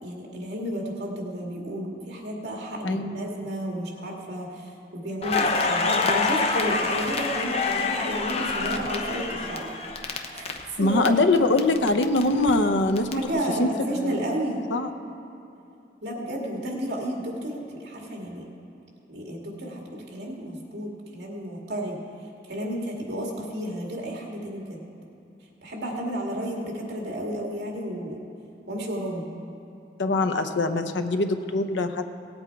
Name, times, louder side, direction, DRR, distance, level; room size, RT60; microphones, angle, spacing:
voice 1, 0.0-9.7 10.3-11.1 13.1-14.7 16.0-18.5 19.1-22.0 22.5-24.8 25.6-28.2 28.7-29.3, equal, 65° right, -1 dB, 2.1 m, -32 dB
Crackle, 5.2-11.1 11.4-13.1, left 4 dB, 35° left, 0.7 m, -27 dB
voice 2, 10.8-13.3 13.6-14.2 14.7-14.9 30.0-32.1, left 2 dB, 90° left, 8 dB, 0.7 m, -23 dB
17.5 x 8.0 x 4.6 m, 2.7 s
head